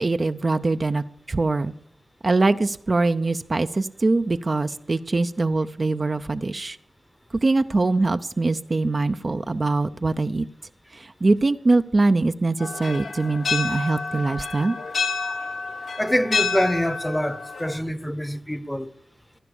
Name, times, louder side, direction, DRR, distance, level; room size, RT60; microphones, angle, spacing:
voice 1, 0.0-1.7 2.2-6.8 7.4-10.5 10.9-14.8, right 3 dB, 45° right, 0.6 m, -23 dB
sound 1, 12.6-17.8, left 5 dB, 90° left, 1.2 m, -29 dB
voice 2, 16.0-18.9, equal, 5° left, 0.9 m, -25 dB
15.5 x 11.0 x 7.0 m
cardioid pair, 60°, 0 cm